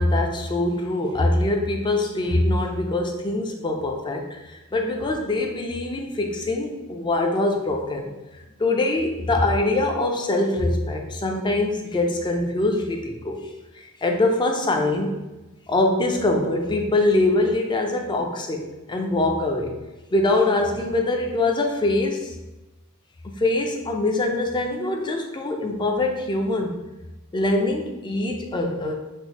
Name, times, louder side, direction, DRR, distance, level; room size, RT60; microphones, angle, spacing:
voice 1, 0.0-8.1 8.6-13.5 13.7-15.1 15.7-19.7 20.1-22.4 23.2-26.8 27.3-28.9, left 2 dB, 20° left, 3 dB, 0.3 m, -23 dB
4.2 x 2.0 x 2.9 m, 1.1 s
head